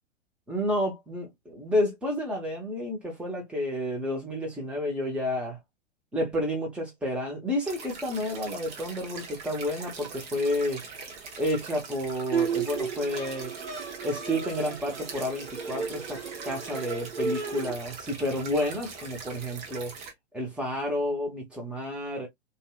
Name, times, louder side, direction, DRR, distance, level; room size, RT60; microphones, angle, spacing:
voice 1, 0.5-5.6 6.1-10.8 11.4-13.5 14.0-19.9 20.3-22.3, left 1 dB, 5° right, 0.9 m, -30 dB
sound 1, 7.6-20.1, right 4 dB, 30° right, 0.8 m, -42 dB
Bowed string instrument, 12.3-17.8, right 6 dB, 80° right, 0.9 m, -33 dB
2.7 x 2.3 x 2.3 m
figure-of-eight pair, 110°, 35 cm